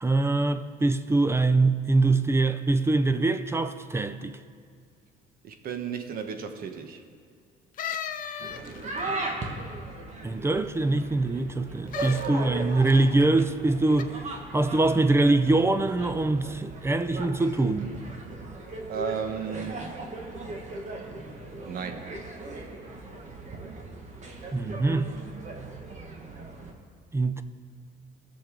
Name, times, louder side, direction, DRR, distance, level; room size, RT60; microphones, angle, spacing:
voice 1, 0.0-4.4 10.2-14.1 14.5-18.0 24.5-25.1 27.1-27.4, right 2 dB, 15° right, 0.5 m, -23 dB
voice 2, 5.4-7.0 18.9-19.8 21.7-22.1, right 6 dB, 60° right, 1.2 m, -34 dB
sound 1, 7.8-9.0 11.9-12.3 12.9-13.2 13.9-14.0, left 8 dB, 55° left, 0.7 m, -35 dB
sound 2, 8.4-26.7, right 2 dB, 45° right, 1.6 m, -38 dB
19.0 x 7.0 x 3.8 m
cardioid pair, 110°, 17 cm